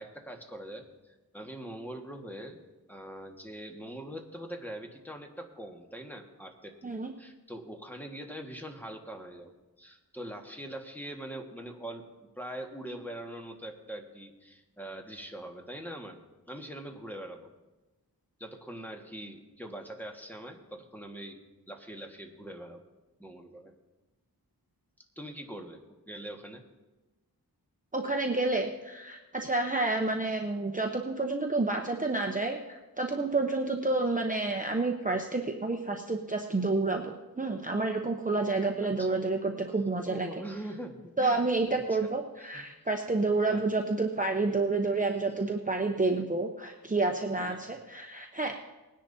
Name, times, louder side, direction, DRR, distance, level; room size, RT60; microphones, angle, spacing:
voice 1, 0.0-2.6 2.9-6.8 7.2-9.5 9.8-16.2 16.5-17.5 18.4-21.4 21.7-22.9 23.2-23.7 25.1-26.6 38.8-39.2 40.1-41.4 41.9-42.1 42.5-42.7 43.5-43.6 47.3-47.6, right 1 dB, 5° left, 2 dB, 1.6 m, -43 dB
voice 2, 27.9-32.6 33.0-40.3 41.2-48.6, right 3 dB, 20° right, 2 dB, 0.8 m, -29 dB
20.5 x 10.5 x 2.8 m, 1.1 s
wide cardioid pair, 60°, 38 cm